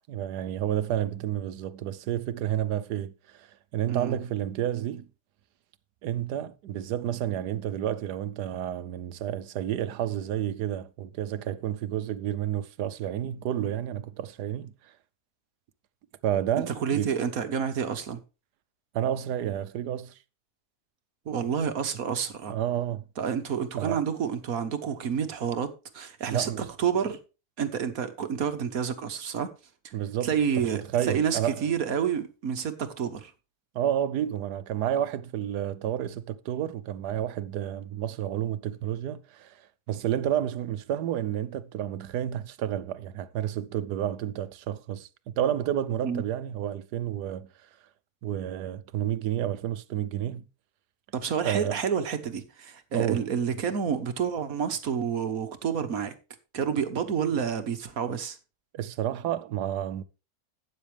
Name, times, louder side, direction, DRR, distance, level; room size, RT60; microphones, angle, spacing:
voice 1, 0.0-5.1 6.0-14.9 16.2-17.1 18.9-20.2 22.5-23.0 23.8-24.0 26.3-26.7 29.9-30.4 30.7-31.7 33.7-45.1 45.3-47.7 48.2-50.5 51.4-51.8 52.9-53.3 58.7-60.0, right 11 dB, 90° right, 1.3 m, -30 dB
voice 2, 16.8-18.2 21.2-22.5 23.2-27.2 27.6-29.5 30.2-33.3 46.0-46.2 51.1-56.1 56.5-58.4, right 7 dB, 65° right, 1.6 m, -29 dB
12.5 x 9.1 x 3.3 m
omnidirectional pair, 1.7 m